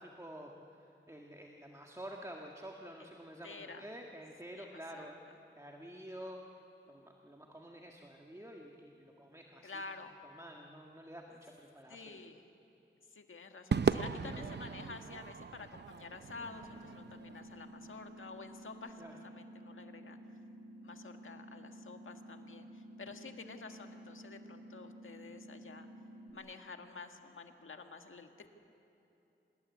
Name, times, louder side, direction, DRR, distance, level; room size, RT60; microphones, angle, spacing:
voice 1, 0.0-5.2 5.6-6.4 6.9-9.8 10.2-12.2 19.0-19.2, equal, 15° right, 0 dB, 1.8 m, -49 dB
voice 2, 3.4-3.8 4.5-5.1 9.6-10.2 11.9-12.5 13.1-20.2 20.8-25.9 26.3-28.5, left 4 dB, 75° left, 5 dB, 1.7 m, -50 dB
Crowd / Fireworks, 13.7-18.2, right 5 dB, 55° right, 0.6 m, -37 dB
sound 1, 16.3-26.3, equal, 90° right, 2.6 m, -52 dB
26.0 x 20.0 x 9.5 m, 2.9 s
wide cardioid pair, 105°, 21 cm